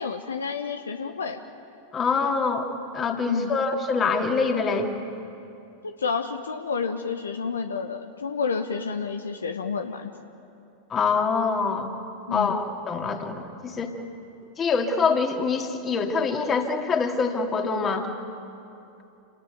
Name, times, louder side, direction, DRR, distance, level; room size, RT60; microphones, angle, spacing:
voice 1, 0.0-1.4 3.2-3.5 5.8-10.1 12.3-12.6, left 5 dB, 70° left, 7 dB, 1.1 m, -30 dB
voice 2, 1.9-2.7 2.9-4.9 10.9-11.9 12.3-14.0 14.6-18.1, left 4 dB, 25° left, 4 dB, 2.6 m, -25 dB
29.0 x 19.0 x 9.4 m, 2.7 s
figure-of-eight pair, 90°, 0 cm